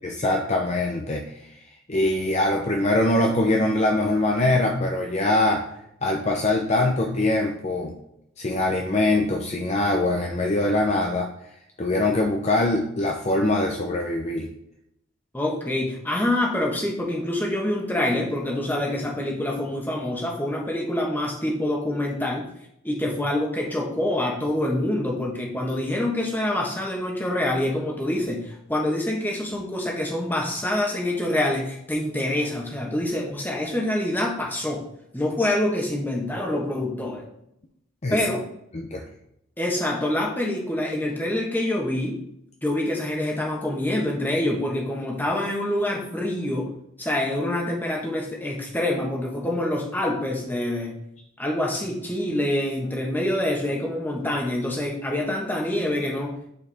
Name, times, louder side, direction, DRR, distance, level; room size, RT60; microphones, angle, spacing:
voice 1, 0.0-1.3 1.9-5.7 6.0-7.9 8.4-11.3 11.8-14.5 38.0-38.2 38.7-39.0, left 2 dB, 35° left, 1 dB, 0.6 m, -23 dB
voice 2, 15.3-22.4 22.8-34.9 35.1-37.2 38.1-38.4 39.6-42.2 42.6-46.7 47.0-51.0 51.4-56.4, left 1 dB, 10° left, -1 dB, 1.2 m, -26 dB
8.3 x 4.6 x 3.5 m, 0.77 s
head